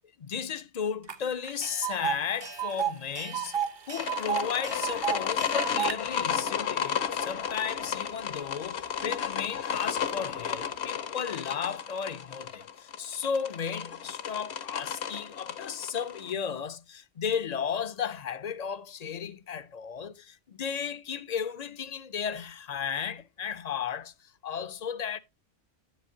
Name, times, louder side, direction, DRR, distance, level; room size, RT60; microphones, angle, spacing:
voice 1, 0.2-3.6 3.9-25.2, left 7 dB, 50° left, 0.5 m, -34 dB
Tick, 1.1-1.2 1.4-6.0, right 8 dB, 30° right, 0.6 m, -32 dB
sound 1, 4.0-16.3, left 8 dB, 80° left, 1.2 m, -33 dB
sound 2, 4.6-11.0, right 4 dB, 70° right, 1.6 m, -54 dB
9.9 x 8.0 x 2.7 m
omnidirectional pair, 1.1 m